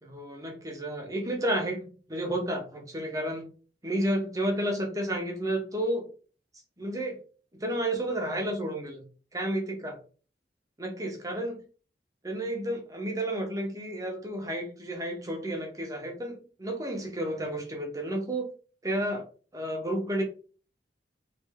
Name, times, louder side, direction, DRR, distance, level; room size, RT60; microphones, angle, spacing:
voice 1, 0.0-3.5 3.8-6.1 6.8-7.2 7.5-9.0 9.3-9.9 10.8-11.6 12.2-18.5 18.8-19.2 19.5-20.2, right 1 dB, 20° right, 0.8 m, -31 dB
3.2 x 2.7 x 3.4 m
head